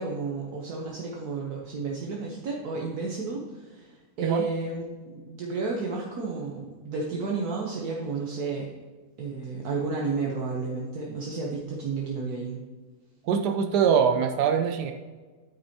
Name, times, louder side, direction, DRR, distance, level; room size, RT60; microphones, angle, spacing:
voice 1, 0.0-8.7 9.2-12.6, right 4 dB, 70° right, -2 dB, 1.5 m, -32 dB
voice 2, 13.3-14.9, right 7 dB, 90° right, 6 dB, 1.2 m, -23 dB
9.2 x 8.7 x 2.8 m, 1.4 s
omnidirectional pair, 1.7 m